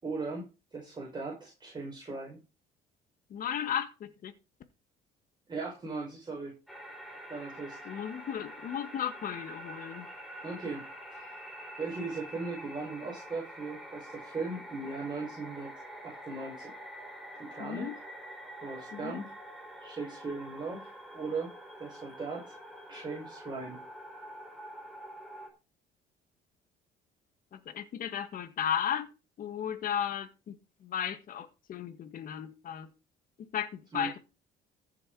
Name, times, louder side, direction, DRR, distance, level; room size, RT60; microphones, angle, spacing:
voice 1, 0.0-2.4 5.5-6.5 7.3-7.8 10.4-11.4 11.8-15.7 16.0-16.7 17.4-17.9 18.6-19.3 19.8-21.5 21.8-22.6 22.9-23.8 33.9-34.2, right 3 dB, 25° right, 5.5 m, -38 dB
voice 2, 3.3-4.3 7.9-10.0 17.6-17.9 19.0-19.2 27.7-29.1 29.4-30.5 30.9-32.9 33.5-34.2, left 9 dB, 55° left, 1.7 m, -34 dB
sound 1, 6.7-25.5, equal, ahead, 4.0 m, -46 dB
14.5 x 6.9 x 4.9 m
cardioid pair, 110°, 17 cm